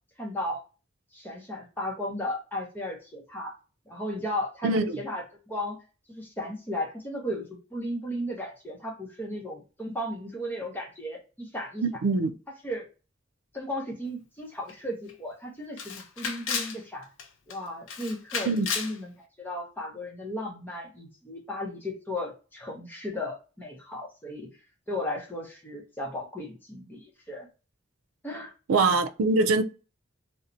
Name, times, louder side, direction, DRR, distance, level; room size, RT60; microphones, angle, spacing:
voice 1, 0.2-0.6 1.1-3.6 3.9-5.8 6.1-11.8 12.6-12.9 13.5-17.1 17.5-24.5 24.9-27.5 28.2-28.5, left 1 dB, 10° left, 0.6 m, -35 dB
voice 2, 4.6-5.0 11.8-12.3 18.5-18.7 28.7-29.6, right 3 dB, 90° right, 0.4 m, -23 dB
Camera, 14.7-14.8 15.1-15.2 15.8-16.8 17.2-17.6 17.9-19.0, left 6 dB, 75° left, 0.5 m, -33 dB
2.6 x 2.1 x 2.4 m
head